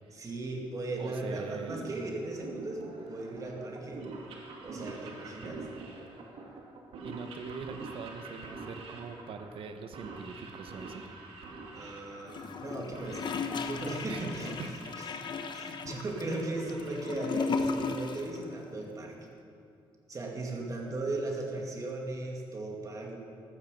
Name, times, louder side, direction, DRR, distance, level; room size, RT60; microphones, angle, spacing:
voice 1, 0.1-4.0 4.6-5.6 11.7-13.2 13.6-15.2 15.5-19.1 20.1-23.2, right 2 dB, 35° right, 0 dB, 2.5 m, -37 dB
voice 2, 1.0-1.8 7.0-11.0 14.1-14.7, right 5 dB, 70° right, 7 dB, 1.2 m, -42 dB
sound 1, 1.3-18.7, right 3 dB, 90° right, 2.2 m, -47 dB
Gurgling / Toilet flush, 12.3-18.4 18.6-18.7, left 4 dB, 50° left, 0.9 m, -35 dB
14.0 x 13.5 x 5.4 m, 2.5 s
cardioid pair, 125°, 10 cm